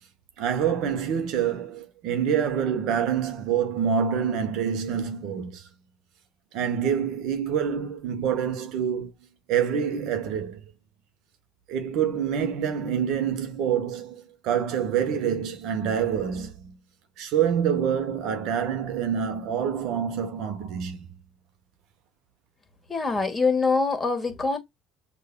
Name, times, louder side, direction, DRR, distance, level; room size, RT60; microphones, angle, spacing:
voice 1, 0.4-5.7 6.5-9.1 9.5-10.6 11.7-16.8 17.2-21.0, right 8 dB, 60° right, 0.9 m, -26 dB
voice 2, 22.9-24.6, left 4 dB, 20° left, 1.6 m, -24 dB
6.5 x 2.6 x 2.3 m
hypercardioid pair, 65°, 0 cm